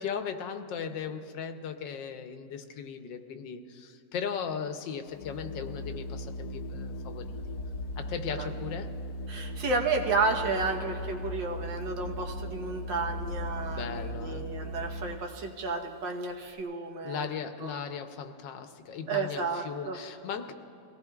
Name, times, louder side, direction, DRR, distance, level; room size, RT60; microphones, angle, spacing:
voice 1, 0.0-7.5 8.0-8.9 13.7-14.5 17.0-20.5, left 7 dB, 85° left, 8 dB, 1.5 m, -37 dB
Organ, 5.1-15.4, equal, 70° left, 1.0 m, -38 dB
voice 2, 9.3-17.3 17.6-17.7 19.1-20.0, right 3 dB, 90° right, 2 dB, 1.9 m, -32 dB
23.0 x 17.0 x 2.4 m, 2.9 s
omnidirectional pair, 1.9 m